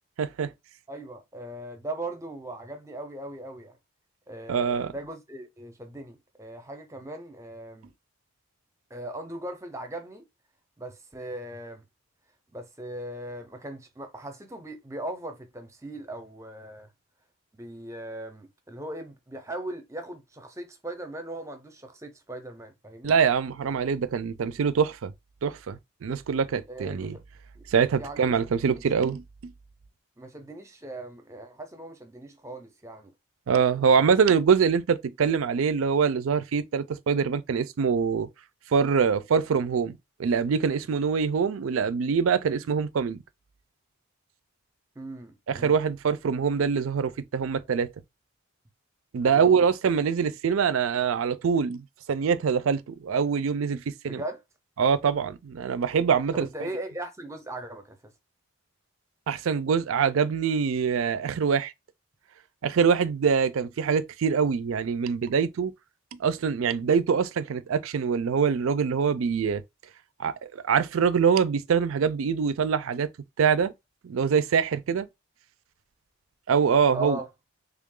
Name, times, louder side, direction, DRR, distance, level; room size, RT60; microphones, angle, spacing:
voice 1, 0.2-0.5 4.5-4.9 23.0-25.1 25.4-27.2 27.7-29.5 33.5-38.3 38.7-43.2 45.5-47.9 49.1-54.2 54.8-56.7 59.3-61.7 62.6-65.7 66.2-69.6 70.2-70.3 70.6-73.1 73.4-73.7 74.0-75.1 76.5-77.2, right 6 dB, 75° right, 0.4 m, -24 dB
voice 2, 0.9-3.8 4.3-7.9 8.9-10.2 10.8-11.8 12.5-16.9 17.5-23.2 26.7-27.2 27.6-27.7 28.0-28.8 30.2-33.1 33.9-34.2 45.0-45.8 49.3-49.5 54.0-54.4 56.3-58.1 76.9-77.3, right 1 dB, 15° right, 0.5 m, -39 dB
3.4 x 2.3 x 3.7 m
head